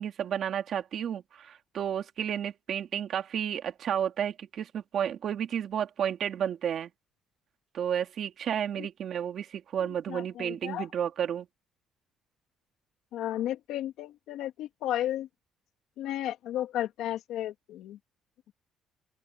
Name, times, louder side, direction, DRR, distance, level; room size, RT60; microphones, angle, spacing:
voice 1, 0.0-6.9 7.7-11.5, right 9 dB, 55° right, 2.5 m, -32 dB
voice 2, 9.8-10.9 13.1-15.3 16.0-18.0, left 12 dB, 80° left, 2.4 m, -34 dB
open air
cardioid pair, 130°, 0 cm